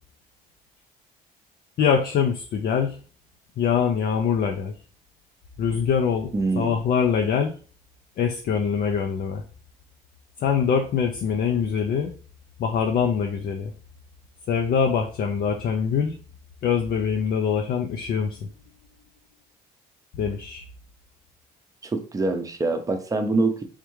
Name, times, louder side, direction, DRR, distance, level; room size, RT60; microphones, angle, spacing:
voice 1, 1.8-3.0 3.6-4.7 5.6-7.5 8.2-9.4 10.4-12.1 12.6-13.7 14.5-16.1 16.6-18.5 20.1-20.6, left 7 dB, 60° left, 3 dB, 0.6 m, -24 dB
voice 2, 6.3-6.8 21.8-23.6, right 3 dB, 20° right, 6 dB, 0.7 m, -25 dB
3.6 x 3.3 x 3.1 m, 0.39 s
cardioid pair, 110°, 17 cm